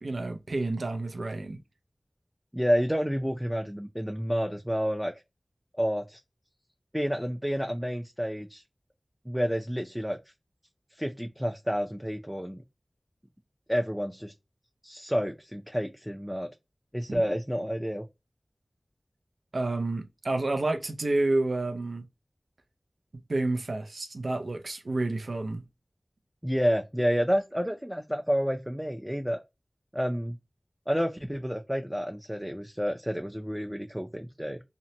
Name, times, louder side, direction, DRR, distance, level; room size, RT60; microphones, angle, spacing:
voice 1, 0.0-1.6 17.1-17.2 19.5-22.1 23.3-25.6, right 2 dB, 85° right, 0.4 m, -29 dB
voice 2, 2.5-5.1 5.8-6.2 6.9-8.6 9.3-10.2 11.0-12.6 13.7-14.3 14.8-16.5 16.9-18.0 26.4-29.4 29.9-30.4 30.9-34.6, equal, 5° right, 0.4 m, -29 dB
2.9 x 2.1 x 2.7 m
wide cardioid pair, 50°, 0 cm